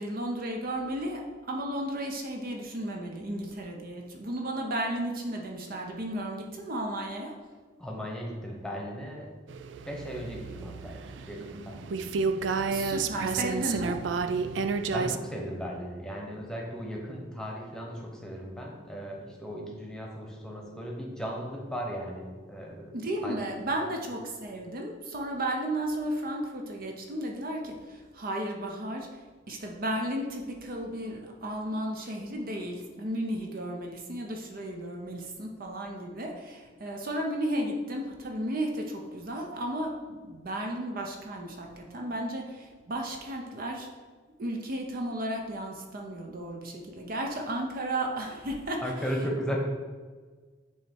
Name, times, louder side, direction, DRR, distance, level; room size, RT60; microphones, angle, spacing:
voice 1, 0.0-7.3 12.7-14.0 22.9-29.2 29.5-43.9 44.4-48.8, right 1 dB, 50° right, 1 dB, 0.7 m, -34 dB
voice 2, 7.8-9.3 9.9-11.9 14.9-23.0 23.2-23.4 48.8-49.6, equal, 5° left, -1 dB, 1.0 m, -36 dB
sound 1, 9.5-15.2, right 5 dB, 70° right, 0.3 m, -31 dB
8.9 x 3.0 x 4.5 m, 1.4 s
head